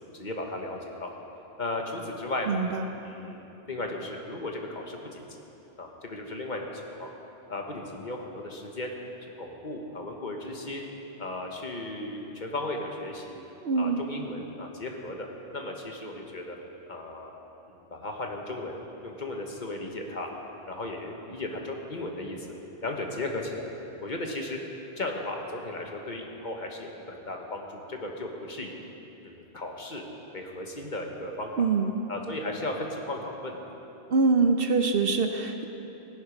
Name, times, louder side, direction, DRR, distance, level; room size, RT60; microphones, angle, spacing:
voice 1, 0.1-1.1 1.6-2.6 3.0-5.2 5.8-6.7 7.0-7.1 7.5-8.9 9.2-10.8 11.2-13.4 13.8-15.3 15.5-16.6 16.9-17.3 17.7-18.8 19.0-20.3 20.7-22.5 22.8-23.7 24.0-24.6 25.0-28.7 29.2-30.0 30.3-31.5 32.1-33.6, left 2 dB, 45° left, 1 dB, 1.3 m, -35 dB
voice 2, 2.5-2.9 13.6-14.0 31.6-32.0 34.1-35.6, right 4 dB, 60° right, 6 dB, 0.8 m, -24 dB
15.5 x 10.0 x 5.1 m, 3.0 s
omnidirectional pair, 1.2 m